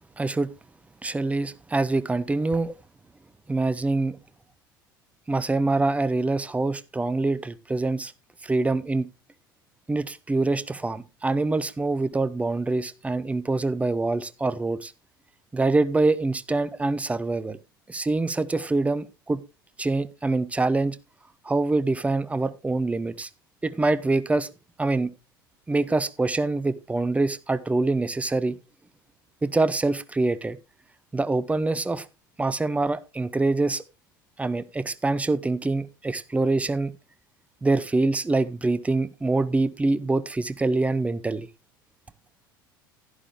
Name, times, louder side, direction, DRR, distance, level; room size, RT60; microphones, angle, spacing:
voice 1, 0.2-0.5 1.0-2.7 3.5-4.2 5.3-8.1 8.4-9.1 9.9-14.9 15.5-17.6 17.9-19.4 19.8-21.0 21.4-23.3 23.6-24.5 24.8-25.1 25.7-28.6 29.4-30.6 31.1-32.0 32.4-33.8 34.4-36.9 37.6-41.5, right 3 dB, 10° right, 0.7 m, -25 dB
11.0 x 11.0 x 3.1 m
figure-of-eight pair, 70°, 12 cm